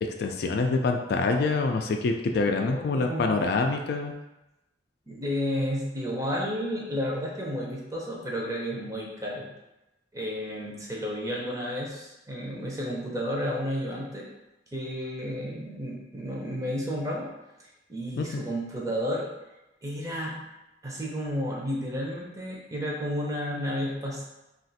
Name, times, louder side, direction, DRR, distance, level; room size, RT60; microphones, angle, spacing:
voice 1, 0.0-4.1 18.2-18.4, left 3 dB, 60° left, 3 dB, 0.3 m, -26 dB
voice 2, 2.5-3.3 5.1-9.5 10.1-14.3 14.7-17.3 17.9-19.3 19.8-20.5 20.8-24.2, equal, 20° right, -3 dB, 0.6 m, -32 dB
2.5 x 2.4 x 3.9 m, 0.98 s
head